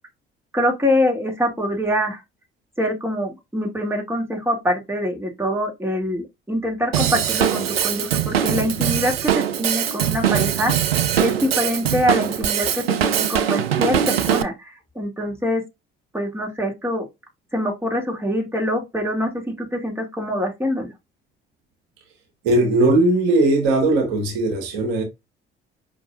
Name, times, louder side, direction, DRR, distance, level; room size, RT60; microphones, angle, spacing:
voice 1, 0.5-2.2 2.8-10.7 11.2-14.7 15.0-15.6 16.1-17.0 17.5-20.9, equal, 10° right, 2.4 m, -24 dB
Drum kit / Drum, 6.9-14.4, right 10 dB, 85° right, 0.5 m, -22 dB
voice 2, 22.4-25.0, right 2 dB, 70° right, 1.5 m, -18 dB
5.3 x 3.2 x 2.6 m
figure-of-eight pair, 50°, 30 cm